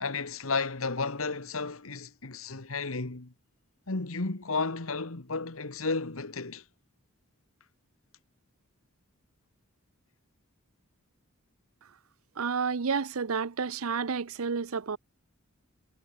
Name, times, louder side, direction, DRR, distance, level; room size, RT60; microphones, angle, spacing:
voice 1, 0.0-3.3 3.9-6.6, left 4 dB, 70° left, 1.6 m, -33 dB
voice 2, 12.4-15.0, right 5 dB, 80° right, 0.7 m, -30 dB
head